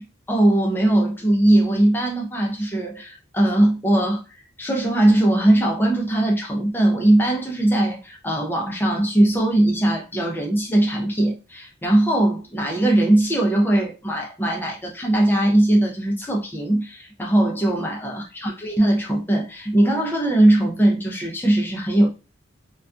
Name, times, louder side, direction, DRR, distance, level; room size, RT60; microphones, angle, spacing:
voice 1, 0.3-4.2 4.6-22.1, right 1 dB, 10° left, 0.5 m, -20 dB
2.2 x 2.2 x 2.5 m
head